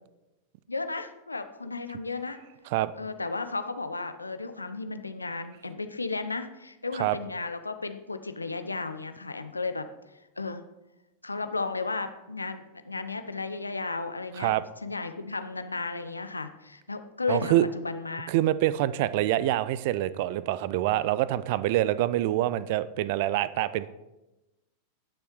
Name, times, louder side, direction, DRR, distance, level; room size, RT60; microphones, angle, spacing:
voice 1, 0.7-2.4 3.0-9.9 10.4-10.6 11.2-14.5 14.8-18.3, left 3 dB, 80° left, 9 dB, 0.6 m, -34 dB
voice 2, 17.3-17.7 18.3-23.9, right 14 dB, 50° right, 16 dB, 0.4 m, -26 dB
17.5 x 6.3 x 3.1 m, 1.0 s
figure-of-eight pair, 90°, 0 cm